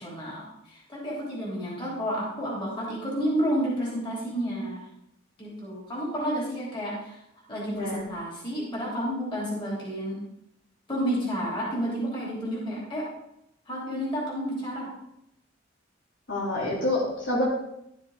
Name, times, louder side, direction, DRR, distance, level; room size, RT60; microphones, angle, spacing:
voice 1, 0.0-4.8 5.4-7.2 7.5-10.2 10.9-13.1 13.7-14.9, equal, 25° left, -6 dB, 3.8 m, -30 dB
voice 2, 16.3-17.4, left 1 dB, 75° left, -5 dB, 3.2 m, -27 dB
12.5 x 7.2 x 3.8 m, 0.79 s
head